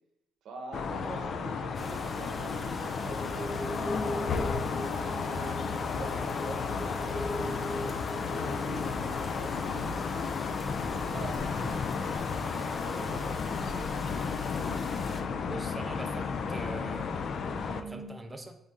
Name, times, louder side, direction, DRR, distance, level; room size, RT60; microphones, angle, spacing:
voice 1, 0.4-4.4 5.0-7.9 8.2-10.4 10.9-14.1, right 3 dB, 80° right, 2 dB, 0.8 m, -45 dB
sound 1, 0.7-17.8, left 5 dB, 60° left, 0.3 m, -33 dB
sound 2, 1.7-15.2, left 2 dB, 30° left, 0.7 m, -45 dB
sound 3, 3.0-11.5 11.8-12.3 12.7-12.8 13.3-13.4 14.4-16.5 16.8-16.9 17.2-18.1, right 1 dB, ahead, 0.9 m, -41 dB
voice 2, 15.4-17.1 17.8-18.6, right 2 dB, 20° right, 5 dB, 0.5 m, -42 dB
4.1 x 3.6 x 3.6 m, 0.93 s
cardioid pair, 90°, 0 cm